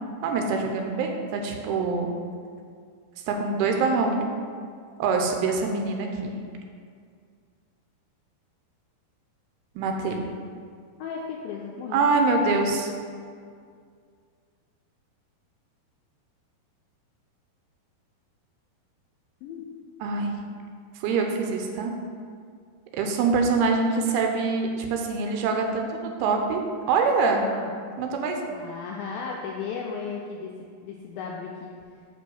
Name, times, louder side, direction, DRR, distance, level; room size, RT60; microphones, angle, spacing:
voice 1, 0.2-2.1 3.3-4.3 5.0-6.4 9.8-10.2 11.9-12.9 20.0-20.3 21.0-21.9 22.9-26.6 26.9-27.4 28.0-28.5, right 4 dB, 85° right, 3 dB, 2.6 m, -24 dB
voice 2, 11.0-12.0 19.4-19.6 27.4-27.7 28.5-30.5 30.8-31.7, left 5 dB, 85° left, -2 dB, 2.1 m, -35 dB
7.5 x 3.1 x 6.2 m, 2.2 s
omnidirectional pair, 4.7 m